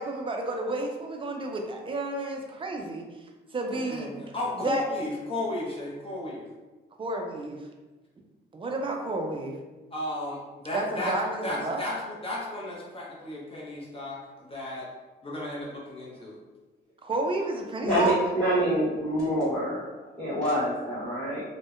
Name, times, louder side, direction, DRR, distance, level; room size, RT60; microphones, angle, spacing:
voice 1, 0.0-3.0 3.5-4.1 4.6-4.8 7.0-7.6 8.5-9.5 10.7-11.8 17.0-18.2, right 2 dB, 25° right, 2 dB, 0.4 m, -31 dB
voice 2, 3.7-6.4 9.9-11.2 11.4-14.9 15.2-16.4, left 1 dB, 30° left, -5 dB, 0.7 m, -34 dB
voice 3, 17.8-19.8 20.2-21.4, equal, 5° left, -12 dB, 1.1 m, -26 dB
2.6 x 2.1 x 2.4 m, 1.2 s
cardioid pair, 90°, 20 cm